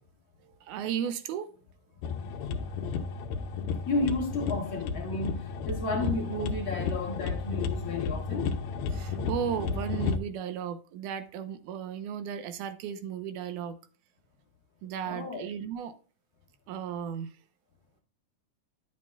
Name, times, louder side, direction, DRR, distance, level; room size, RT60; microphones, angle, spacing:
voice 1, 0.4-1.5 8.9-13.8 14.8-15.9 16.7-17.3, right 8 dB, 90° right, 2.3 m, -35 dB
sound 1, 2.0-10.2, left 5 dB, 75° left, 1.9 m, -33 dB
voice 2, 3.9-8.6 15.0-15.5, left 2 dB, 50° left, 1.7 m, -32 dB
11.0 x 7.4 x 2.2 m
omnidirectional pair, 3.5 m